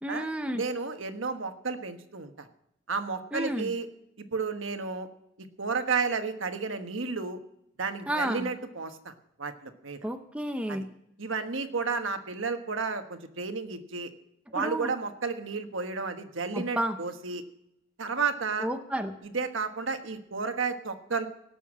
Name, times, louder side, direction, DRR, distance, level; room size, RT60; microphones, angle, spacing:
voice 1, 0.0-0.6 3.3-3.7 8.1-8.5 10.0-10.9 14.5-14.9 16.5-17.0 18.6-19.2, right 1 dB, 5° right, 6 dB, 0.8 m, -31 dB
voice 2, 0.5-2.5 2.9-3.9 4.3-5.1 5.4-7.4 7.8-9.1 9.4-10.0 10.7-10.9 11.2-14.1 14.5-17.4 18.0-18.7 19.2-21.3, right 4 dB, 75° right, 7 dB, 1.3 m, -32 dB
17.5 x 7.0 x 7.4 m, 0.79 s
head